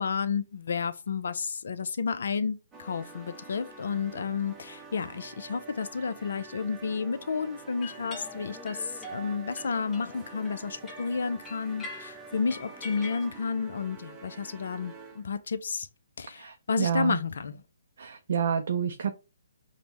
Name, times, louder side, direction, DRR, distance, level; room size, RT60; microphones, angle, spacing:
voice 1, 0.0-15.9 16.2-17.6, left 5 dB, 65° left, 0.5 m, -31 dB
sound 1, 2.7-15.4, right 4 dB, 15° right, 0.7 m, -47 dB
sound 2, 7.8-13.3, left 2 dB, 15° left, 0.8 m, -44 dB
voice 2, 16.3-17.2 18.0-19.1, right 7 dB, 60° right, 0.4 m, -29 dB
5.1 x 2.1 x 3.0 m
figure-of-eight pair, 135°, 0 cm